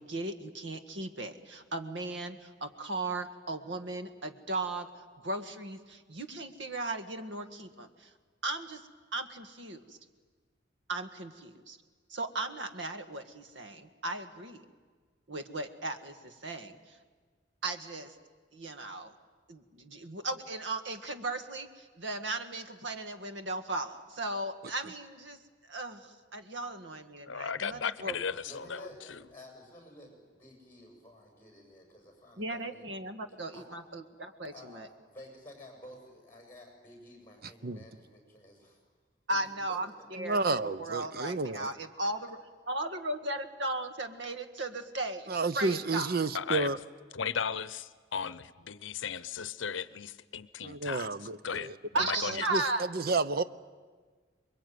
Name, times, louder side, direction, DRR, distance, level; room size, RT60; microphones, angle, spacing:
voice 1, 0.0-4.9 5.2-8.1 8.4-10.0 10.9-11.8 12.1-14.7 15.3-17.0 17.6-18.2 18.5-19.1 19.5-28.2 32.4-34.9 39.3-42.3 42.7-45.3 45.6-46.2 51.9-52.9, right 2 dB, 70° right, 1.7 m, -37 dB
voice 2, 27.3-29.2 46.3-46.7 47.1-51.1 51.4-51.7 51.9-52.4, left 6 dB, 80° left, 0.7 m, -36 dB
voice 3, 28.4-32.9 33.5-33.7 34.4-38.8 39.3-40.3, left 1 dB, 10° left, 7.3 m, -52 dB
voice 4, 37.4-37.8 40.2-41.7 45.3-46.8 50.6-51.8 52.2-53.4, right 3 dB, 50° right, 0.8 m, -31 dB
27.5 x 22.0 x 9.4 m
head